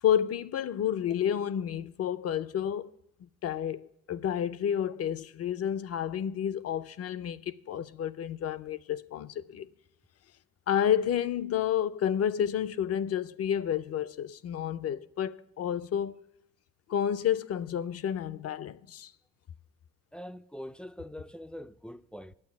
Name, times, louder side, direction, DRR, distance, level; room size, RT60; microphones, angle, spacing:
voice 1, 0.0-2.9 3.2-9.7 10.7-16.2 16.9-19.1, left 9 dB, 55° left, 0.5 m, -30 dB
voice 2, 20.1-22.3, equal, 5° left, 0.3 m, -43 dB
9.8 x 8.6 x 7.2 m
cardioid pair, 90°, 30 cm